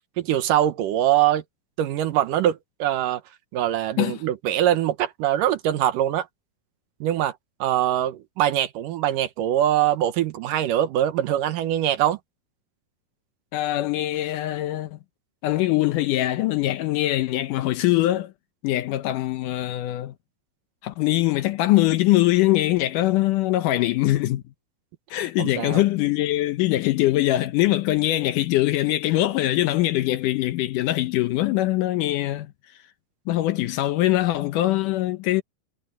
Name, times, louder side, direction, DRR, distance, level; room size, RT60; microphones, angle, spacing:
voice 1, 0.2-1.4 1.8-3.2 3.5-6.3 7.0-7.3 7.6-12.2 25.4-25.8, right 12 dB, 70° right, 2.5 m, -23 dB
voice 2, 13.5-15.0 15.4-18.3 18.6-20.1 20.8-24.4 25.1-32.5 33.3-35.4, left 15 dB, 75° left, 2.1 m, -22 dB
omnidirectional pair, 4.1 m